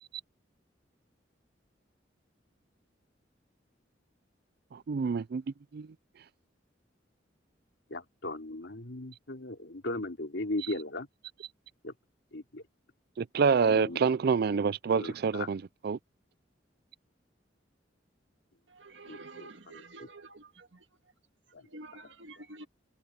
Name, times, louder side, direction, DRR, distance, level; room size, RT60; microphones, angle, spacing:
voice 1, 4.7-5.4 5.7-5.9 13.2-16.0, right 5 dB, 60° right, 0.4 m, -27 dB
voice 2, 7.9-11.1 11.8-11.9 12.3-12.6 13.7-14.0 14.9-15.5 19.1-19.8 21.5-21.6, left 2 dB, 75° left, 3.0 m, -38 dB
voice 3, 18.8-20.7 21.7-22.7, right 2 dB, 90° right, 1.9 m, -48 dB
head